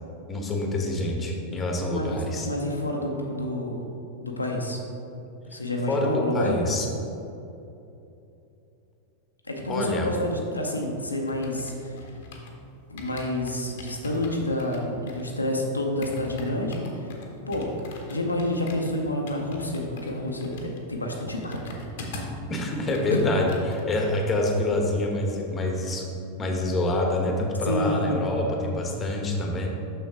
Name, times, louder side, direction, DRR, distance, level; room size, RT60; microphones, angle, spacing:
voice 1, 0.3-2.5 5.9-6.9 9.7-10.1 22.5-26.1 26.4-29.7, left 1 dB, 20° left, 1 dB, 1.1 m, -26 dB
voice 2, 2.4-4.8 5.5-6.6 9.5-12.0 12.9-17.1 17.5-17.7 18.1-21.6 23.1-23.2 27.6-28.2, left 1 dB, 80° left, 1 dB, 0.8 m, -29 dB
sound 1, 10.3-12.6 13.0-22.4 22.7-24.6 24.8-25.1, left 1 dB, 55° left, 0.9 m, -42 dB
6.5 x 6.2 x 3.5 m, 2.8 s
figure-of-eight pair, 90°, 0 cm